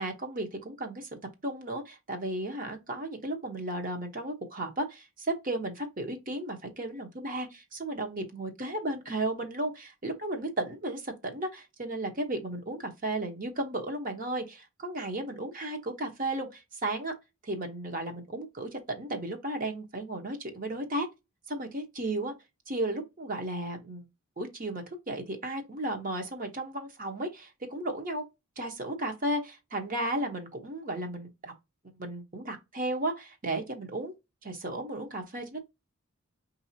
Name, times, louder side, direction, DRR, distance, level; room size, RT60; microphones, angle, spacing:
voice 1, 0.0-17.1 17.4-21.1 21.5-22.3 22.7-24.1 24.4-28.2 28.6-31.5 32.0-34.1 34.4-35.7, right 1 dB, 40° right, 0.9 m, -34 dB
5.2 x 2.7 x 2.7 m
head